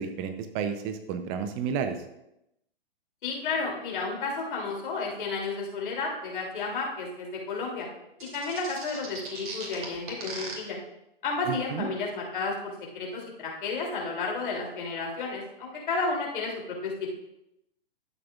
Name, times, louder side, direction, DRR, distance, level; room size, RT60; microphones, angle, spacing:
voice 1, 0.0-2.0 11.5-11.9, right 6 dB, 25° right, 8 dB, 0.6 m, -31 dB
voice 2, 3.2-7.9 8.2-10.8 11.2-17.1, left 4 dB, 60° left, -1 dB, 3.0 m, -32 dB
sound 1, 8.2-10.5, right 3 dB, 55° right, 3.0 m, -38 dB
12.5 x 7.5 x 2.4 m, 0.84 s
figure-of-eight pair, 120°, 29 cm